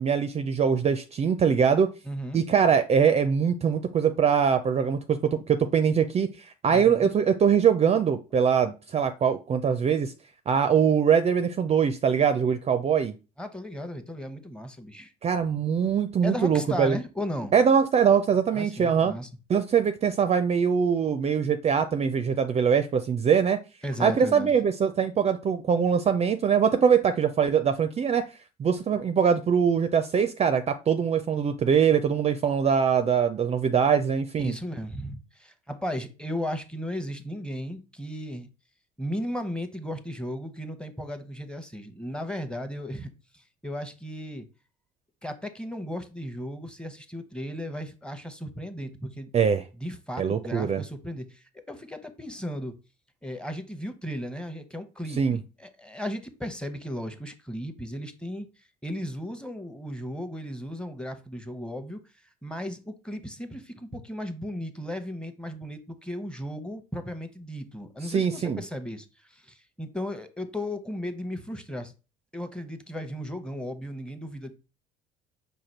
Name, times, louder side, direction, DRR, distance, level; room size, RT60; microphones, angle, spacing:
voice 1, 0.0-1.9 2.3-10.1 10.5-13.1 15.2-17.0 17.5-19.1 19.5-23.6 24.0-28.2 28.6-34.6 49.3-49.6 50.2-50.8 55.2-55.4 68.0-68.6, right 7 dB, 30° right, 9 dB, 0.4 m, -23 dB
voice 2, 2.0-2.4 6.7-7.1 13.4-15.1 16.2-17.5 18.5-19.3 23.8-24.5 34.4-38.5 39.0-44.5 45.2-49.3 49.8-52.7 53.2-58.5 58.8-62.0 62.4-71.9 72.3-74.5, equal, 5° left, 9 dB, 0.8 m, -35 dB
5.0 x 2.3 x 4.4 m, 0.31 s
hypercardioid pair, 65°, 21 cm